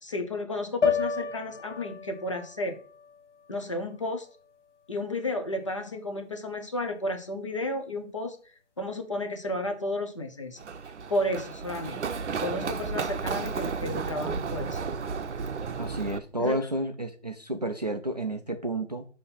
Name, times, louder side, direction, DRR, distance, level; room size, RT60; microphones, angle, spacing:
voice 1, 0.0-2.8 3.5-4.3 4.9-8.4 8.8-10.6 11.1-14.8 16.4-16.6, left 1 dB, 25° left, 5 dB, 0.6 m, -32 dB
sound 1, 0.8-5.1, left 5 dB, 80° left, 1.2 m, -33 dB
Run, 10.6-16.2, right 5 dB, 75° right, 0.7 m, -33 dB
voice 2, 15.8-19.1, right 1 dB, 35° right, 6 dB, 0.4 m, -31 dB
6.3 x 2.9 x 5.6 m, 0.41 s
figure-of-eight pair, 160°, 36 cm